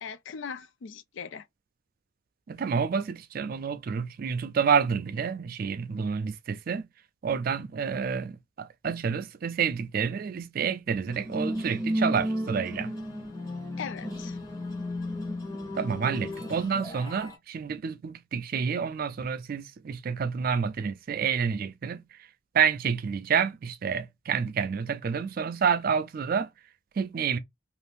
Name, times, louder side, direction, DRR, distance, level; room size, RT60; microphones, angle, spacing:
voice 1, 0.0-1.5 13.8-14.4, left 6 dB, 65° left, 0.4 m, -39 dB
voice 2, 2.5-6.9 7.2-12.9 15.8-22.0 22.5-26.5 27.0-27.4, right 6 dB, 45° right, 0.3 m, -29 dB
sound 1, 11.1-17.4, equal, 15° left, 0.9 m, -33 dB
2.6 x 2.4 x 3.4 m
head